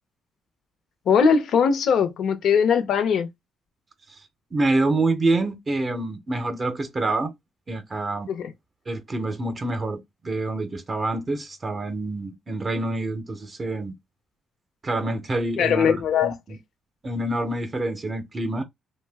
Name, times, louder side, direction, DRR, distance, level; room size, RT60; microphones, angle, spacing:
voice 1, 1.1-3.3 8.3-8.4 15.6-16.3, left 6 dB, 70° left, 0.6 m, -20 dB
voice 2, 4.5-7.3 7.7-8.3 8.9-13.9 14.8-16.6 17.0-18.6, right 2 dB, 35° right, 0.6 m, -27 dB
2.6 x 2.1 x 3.3 m
cardioid pair, 90°, 0 cm